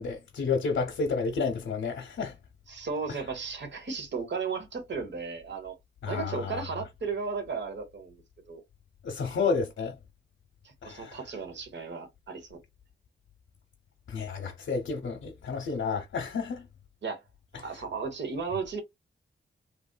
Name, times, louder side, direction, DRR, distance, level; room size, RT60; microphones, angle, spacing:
voice 1, 0.0-2.4 6.0-6.6 9.0-10.0 10.8-11.2 14.1-16.7, left 5 dB, 75° left, 0.7 m, -31 dB
voice 2, 2.7-5.7 6.1-8.2 8.5-8.6 10.6-12.6 17.0-17.2 17.5-18.8, right 5 dB, 65° right, 1.1 m, -35 dB
3.1 x 2.6 x 2.2 m
wide cardioid pair, 120°, 20 cm